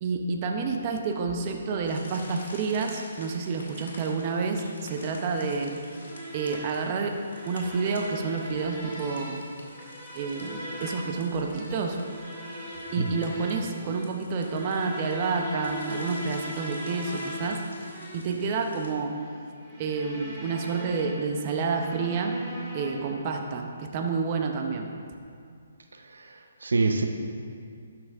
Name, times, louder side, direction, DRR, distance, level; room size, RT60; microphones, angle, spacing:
voice 1, 0.0-5.8 6.3-7.2 7.5-9.4 10.1-12.0 12.9-17.6 18.1-19.1 19.8-22.4 22.7-24.9, right 4 dB, 35° right, 3 dB, 0.8 m, -29 dB
sound 1, 1.8-18.9, left 2 dB, 70° left, 2.4 m, -49 dB
sound 2, 5.3-23.3, equal, 10° right, 2.4 m, -40 dB
voice 2, 25.9-27.1, right 3 dB, 80° right, 5 dB, 0.7 m, -27 dB
12.5 x 6.1 x 3.6 m, 2.3 s
hypercardioid pair, 150°, 0 cm